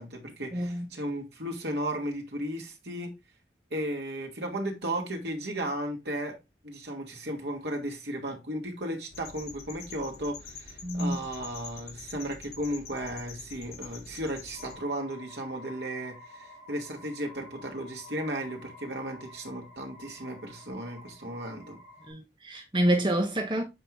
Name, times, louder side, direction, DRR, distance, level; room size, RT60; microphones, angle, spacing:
voice 1, 0.0-3.1 3.7-6.3 6.6-21.8, right 1 dB, 80° right, 2.6 m, -35 dB
voice 2, 0.5-0.9 10.8-11.2 22.1-23.6, right 1 dB, 25° right, 0.9 m, -27 dB
sound 1, 9.1-14.8, left 5 dB, 65° left, 2.9 m, -46 dB
sound 2, 14.5-22.1, left 1 dB, 45° left, 4.2 m, -50 dB
8.1 x 4.7 x 3.5 m
head